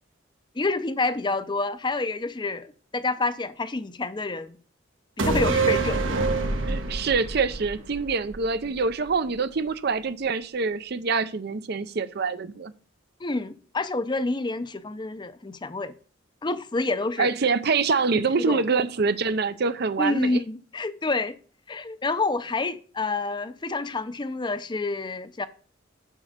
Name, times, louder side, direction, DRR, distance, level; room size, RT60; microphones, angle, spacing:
voice 1, 0.6-4.6 5.2-6.1 13.2-15.9 16.4-17.3 18.1-18.6 20.0-21.4 21.7-25.5, left 3 dB, 25° left, 0.5 m, -28 dB
sound 1, 5.2-8.8 9.1-9.2, right 3 dB, 85° right, 1.5 m, -26 dB
voice 2, 6.7-12.7 17.2-20.4, right 4 dB, 55° right, 0.6 m, -25 dB
7.3 x 6.0 x 6.7 m
head